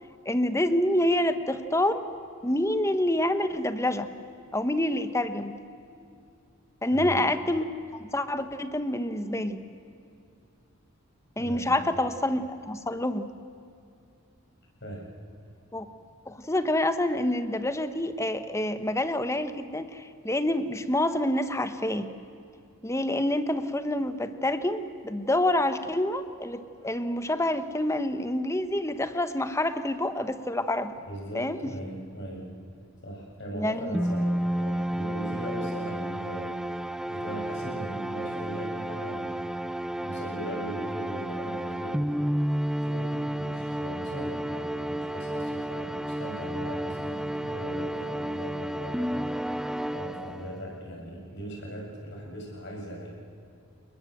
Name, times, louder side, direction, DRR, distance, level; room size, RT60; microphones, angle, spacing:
voice 1, 0.2-2.0 2.4-4.1 4.5-5.5 6.8-7.7 7.9-9.6 11.4-13.3 15.7-15.9 16.3-22.1 22.8-30.9 31.3-31.7 33.5-34.0, left 1 dB, 15° left, 11 dB, 1.1 m, -27 dB
voice 2, 6.9-7.3 11.4-11.9 14.8-15.1 31.1-32.5 33.0-39.7 40.0-42.1 42.8-49.6 49.9-53.3, right 1 dB, 55° left, -1 dB, 7.3 m, -39 dB
sound 1, 33.9-50.7, right 1 dB, 5° right, 0.5 m, -31 dB
29.5 x 21.5 x 7.9 m, 2.6 s
head